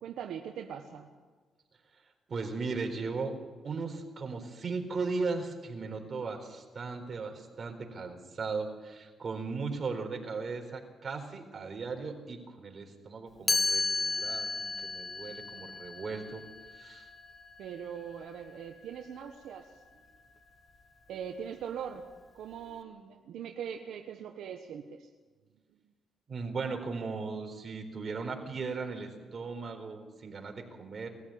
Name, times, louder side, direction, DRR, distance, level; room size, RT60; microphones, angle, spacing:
voice 1, 0.0-1.1 17.6-19.7 21.1-22.0 22.3-25.1, right 8 dB, 75° right, 4 dB, 1.3 m, -41 dB
voice 2, 2.3-3.4 3.6-16.4 16.8-17.1 26.3-31.1, right 4 dB, 40° right, 4 dB, 4.2 m, -37 dB
Chime, 13.5-19.3, left 3 dB, 30° left, 1.1 m, -34 dB
21.0 x 14.5 x 8.8 m, 1.4 s
cardioid pair, 90°, 0 cm